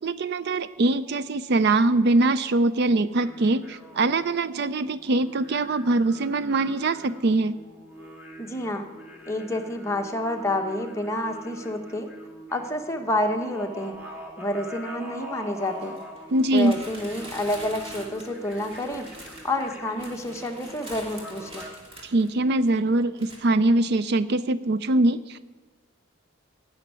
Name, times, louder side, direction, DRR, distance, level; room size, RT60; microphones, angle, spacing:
voice 1, 0.0-7.6 16.3-16.8 22.0-25.5, right 2 dB, 50° right, 15 dB, 0.4 m, -23 dB
sound 1, 3.1-21.7, equal, 10° right, 2.0 m, -44 dB
voice 2, 8.4-8.9 9.3-12.1 12.5-14.0 14.4-16.0 16.5-21.7, left 1 dB, 15° left, 3 dB, 1.1 m, -29 dB
sound 2, 13.9-14.0 15.5-22.8 23.2-23.4, right 1 dB, 25° right, 2.9 m, -44 dB
17.0 x 6.5 x 9.4 m, 1.3 s
head